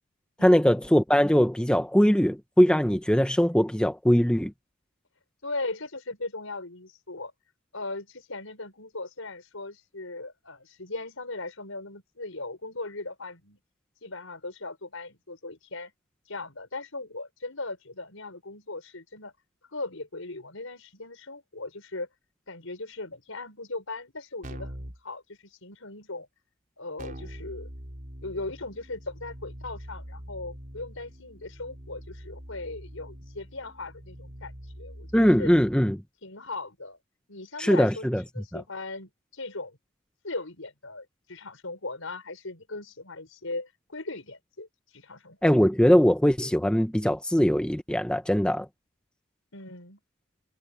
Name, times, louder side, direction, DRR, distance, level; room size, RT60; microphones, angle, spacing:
voice 1, 0.4-4.5 35.1-36.0 37.6-38.2 38.5-38.6 45.4-48.7, equal, 5° left, 1.1 m, -21 dB
voice 2, 5.4-7.3 7.7-13.6 14.0-15.9 16.3-19.3 19.7-22.1 22.5-24.7 25.0-26.3 26.8-27.7 28.2-34.5 34.8-35.5 36.2-37.0 37.3-39.8 40.2-44.7 44.9-45.5 49.5-50.0, left 2 dB, 75° left, 5.4 m, -38 dB
Keyboard (musical), 24.4-25.0 27.0-35.9, equal, 40° right, 4.6 m, -43 dB
head